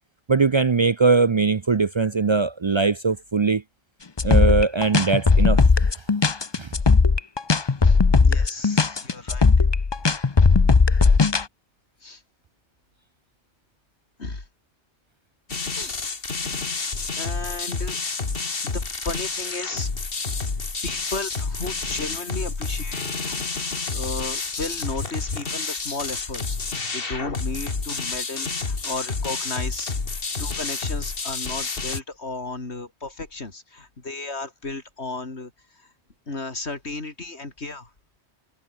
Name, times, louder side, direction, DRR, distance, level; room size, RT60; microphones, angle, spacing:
voice 1, 0.3-3.6 4.2-5.6 6.6-6.7, right 4 dB, 45° right, 0.4 m, -20 dB
sound 1, 4.2-11.4, left 4 dB, 25° left, 0.7 m, -17 dB
voice 2, 7.8-9.5 12.0-12.2 14.2-14.4 15.7-16.0 17.1-18.0 18.4-19.9 20.8-26.6 26.9-30.0 30.4-35.5 36.3-37.9, left 3 dB, 70° left, 3.7 m, -34 dB
sound 2, 15.5-32.0, left 4 dB, 55° left, 2.2 m, -29 dB
omnidirectional pair, 1.1 m